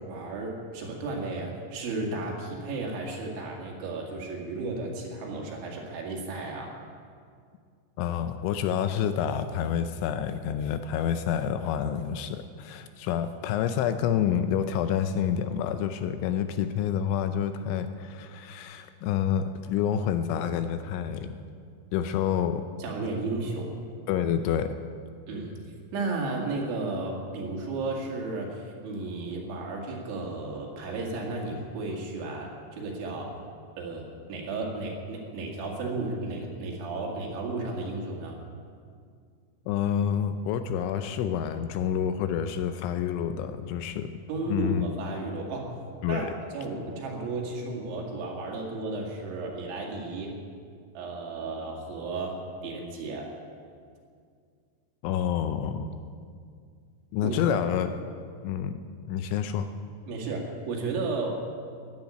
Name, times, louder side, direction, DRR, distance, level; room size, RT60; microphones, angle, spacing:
voice 1, 0.0-6.8 22.8-23.7 25.3-25.6 25.9-33.3 33.8-34.0 34.3-38.4 44.3-45.8 46.1-50.3 50.9-52.4 52.6-53.3 57.2-57.6 60.1-61.4, right 3 dB, 70° right, 0 dB, 4.5 m, -33 dB
voice 2, 8.0-21.4 21.9-22.7 24.1-24.7 39.7-44.1 44.5-44.9 46.0-46.3 55.0-55.9 57.1-57.9 58.4-58.8 59.1-59.7, left 9 dB, 80° left, 9 dB, 2.9 m, -28 dB
13.5 x 10.5 x 9.9 m, 2.2 s
omnidirectional pair, 5.7 m